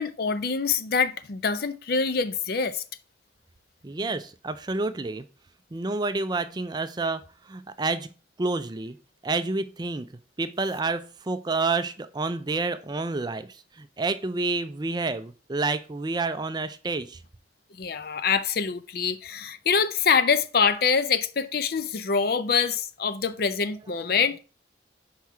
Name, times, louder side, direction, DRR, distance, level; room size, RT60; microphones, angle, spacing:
voice 1, 0.0-2.8 17.8-24.4, left 5 dB, 55° left, 0.5 m, -25 dB
voice 2, 3.8-5.3 5.7-7.2 7.5-8.1 8.4-9.0 9.2-10.1 10.4-13.5 13.8-17.2, right 3 dB, 25° right, 0.4 m, -29 dB
5.8 x 4.8 x 4.6 m
head